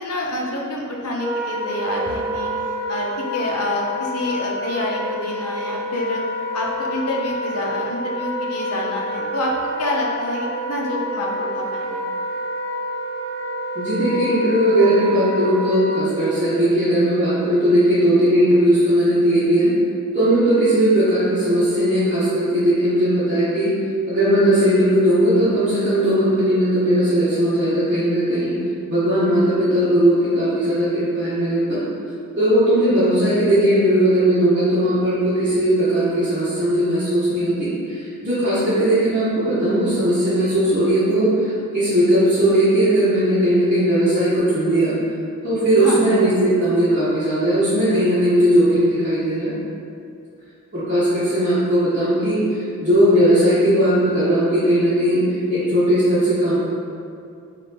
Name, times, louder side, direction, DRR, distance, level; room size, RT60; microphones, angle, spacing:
voice 1, 0.0-2.5 2.9-6.2 6.5-12.0 45.8-46.0, left 1 dB, 80° left, -2 dB, 0.6 m, -27 dB
Wind instrument woodwind instrument, 1.1-16.1, equal, 15° right, 0.5 m, -28 dB
voice 2, 13.7-19.7 20.1-23.7 24.1-28.5 28.9-31.8 32.4-45.0 45.4-49.5 50.7-52.4 52.8-55.2 55.5-56.6, right 1 dB, 35° right, -15 dB, 1.0 m, -18 dB
4.2 x 2.5 x 3.4 m, 2.4 s
head